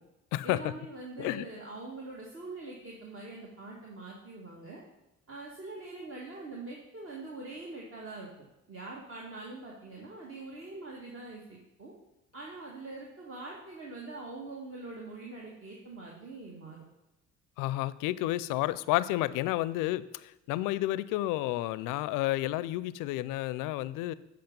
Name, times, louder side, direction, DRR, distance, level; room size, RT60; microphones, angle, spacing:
voice 1, 0.4-4.8 5.3-8.3 8.7-11.9 12.3-16.8, right 3 dB, 40° right, -2 dB, 1.7 m, -43 dB
voice 2, 17.6-24.1, left 16 dB, 65° left, 18 dB, 0.5 m, -31 dB
7.9 x 5.1 x 5.3 m, 0.93 s
hypercardioid pair, 65°, 34 cm